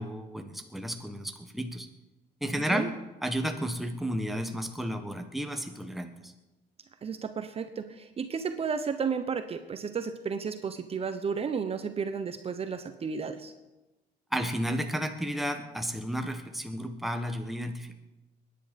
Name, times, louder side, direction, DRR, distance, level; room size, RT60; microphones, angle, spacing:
voice 1, 0.0-1.9 2.4-2.9 3.2-6.3 14.3-18.0, equal, ahead, 5 dB, 1.3 m, -32 dB
voice 2, 2.4-2.9 7.0-13.5, right 6 dB, 35° right, 8 dB, 1.0 m, -33 dB
22.0 x 10.0 x 5.3 m, 1.1 s
cardioid pair, 110°, 17 cm